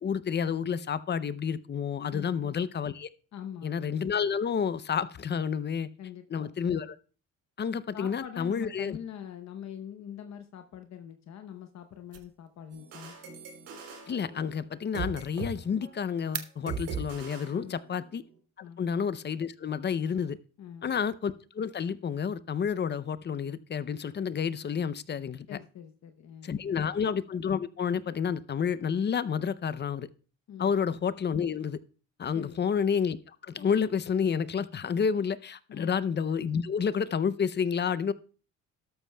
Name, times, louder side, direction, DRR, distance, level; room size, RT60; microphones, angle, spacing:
voice 1, 0.0-3.1 3.6-5.9 6.3-7.0 7.6-9.0 14.1-18.2 18.8-20.4 20.8-25.6 26.4-30.1 30.6-31.8 32.2-38.1, left 7 dB, 35° left, 16 dB, 0.6 m, -30 dB
voice 2, 2.1-2.6 3.3-3.7 6.0-6.6 7.9-13.1 17.5-17.9 18.6-18.8 20.6-20.9 25.5-26.6 30.5-30.7 32.3-32.6 35.7-35.9, left 9 dB, 65° left, 7 dB, 0.9 m, -44 dB
sound 1, 11.5-17.3, right 9 dB, 55° right, 0.9 m, -47 dB
sound 2, 12.7-15.6 15.8-16.1 16.7-18.2, right 4 dB, 90° right, 3.6 m, -40 dB
12.5 x 12.5 x 2.2 m, 0.38 s
cardioid pair, 90°, 30 cm